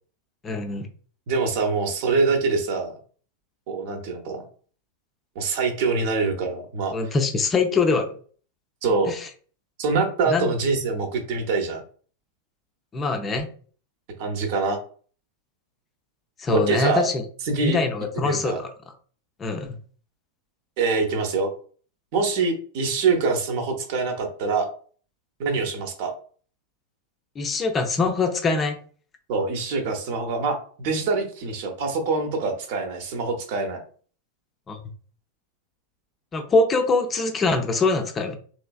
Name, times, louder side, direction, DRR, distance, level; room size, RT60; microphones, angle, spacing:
voice 1, 0.4-0.9 6.9-8.1 9.1-9.3 10.3-10.5 12.9-13.5 16.4-17.2 17.6-18.7 19.4-19.7 27.4-28.8 34.7-34.8 36.3-38.4, left 3 dB, 20° left, 5 dB, 0.5 m, -23 dB
voice 2, 1.3-2.9 3.7-4.4 5.4-6.9 8.8-9.1 9.8-11.8 14.2-14.8 16.5-17.0 17.5-17.8 18.2-18.6 20.8-21.5 22.1-24.7 25.4-26.1 29.3-33.8, right 4 dB, 50° right, 5 dB, 0.8 m, -24 dB
3.1 x 3.1 x 2.3 m, 0.43 s
figure-of-eight pair, 90°, 0 cm